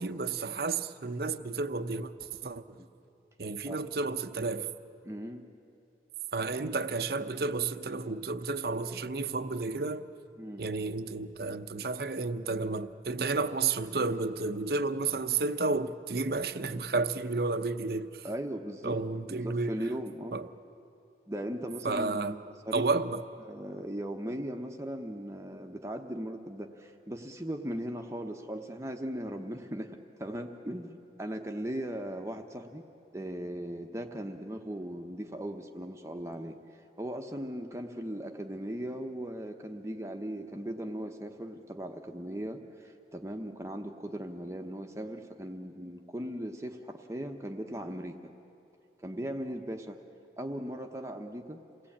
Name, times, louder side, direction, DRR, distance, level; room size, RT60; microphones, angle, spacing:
voice 1, 0.0-2.6 3.4-4.7 6.3-10.1 10.6-18.3 18.8-19.7 20.3-20.5 21.8-22.3 22.7-23.3, right 3 dB, 55° right, 0.7 m, -31 dB
voice 2, 5.0-5.5 10.4-10.7 18.2-19.0 19.3-20.4 21.3-22.9 23.4-32.9 33.1-36.6 37.0-48.3 49.0-50.0 50.4-51.6, equal, 15° right, 0.9 m, -38 dB
28.0 x 18.5 x 8.7 m
head